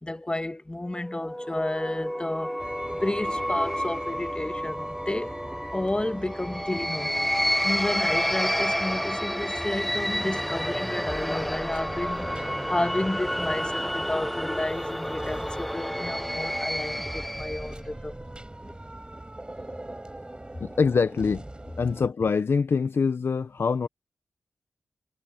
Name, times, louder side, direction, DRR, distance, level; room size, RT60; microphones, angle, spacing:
voice 1, 0.0-2.6 2.9-5.4 5.7-7.2 7.6-18.2, left 1 dB, 20° left, 1.9 m, -31 dB
sound 1, 0.9-17.7, equal, ahead, 0.9 m, -30 dB
sound 2, 2.6-22.1, right 1 dB, 20° right, 6.2 m, -40 dB
voice 2, 20.6-21.4 21.8-23.9, left 5 dB, 65° left, 0.9 m, -24 dB
cardioid pair, 45°, 4 cm